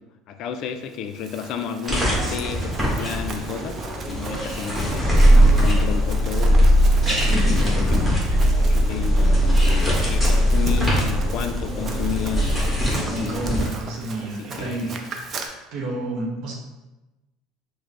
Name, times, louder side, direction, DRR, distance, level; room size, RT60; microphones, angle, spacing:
voice 1, 0.3-3.7 4.1-6.7 7.1-13.7 14.2-14.3 14.6-15.0, left 7 dB, 55° left, 8 dB, 0.4 m, -32 dB
Run, 0.9-15.5, right 3 dB, 35° right, 0.5 m, -38 dB
sound 1, 1.9-13.7, equal, 5° right, 1.2 m, -27 dB
Purr, 4.9-13.0, equal, 20° left, 1.2 m, -19 dB
voice 2, 7.0-7.8 8.3-8.4 11.7-11.8 13.1-15.0 15.7-16.5, right 1 dB, 60° right, 0 dB, 0.9 m, -30 dB
4.8 x 2.0 x 3.2 m, 1.0 s
supercardioid pair, 125°, 0 cm